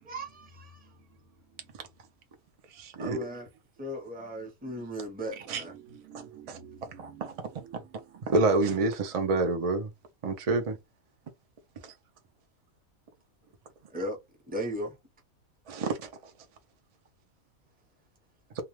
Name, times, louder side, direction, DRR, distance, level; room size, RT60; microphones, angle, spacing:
voice 1, 0.1-0.9 3.0-3.5 3.8-5.7 13.9-14.2 14.5-15.0, equal, 10° right, 0.7 m, -37 dB
voice 2, 2.7-3.2 5.5-5.6 6.5-6.6 7.0-7.3 8.3-9.9 10.2-10.8 11.8-11.9 15.7-16.1, right 3 dB, 60° right, 0.3 m, -27 dB
voice 3, 5.5-7.8, right 7 dB, 85° right, 1.1 m, -50 dB
2.4 x 2.3 x 3.1 m
omnidirectional pair, 1.5 m